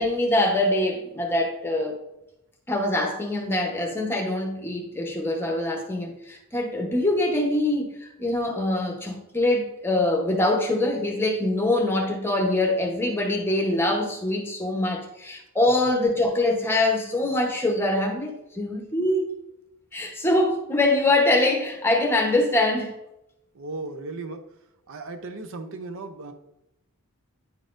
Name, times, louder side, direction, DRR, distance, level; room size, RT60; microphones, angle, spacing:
voice 1, 0.0-2.0 2.7-19.3 19.9-22.9, left 1 dB, 10° left, 1 dB, 0.9 m, -24 dB
voice 2, 23.5-24.4 24.9-26.3, right 3 dB, 60° right, 8 dB, 0.6 m, -36 dB
9.2 x 4.1 x 2.5 m, 0.87 s
head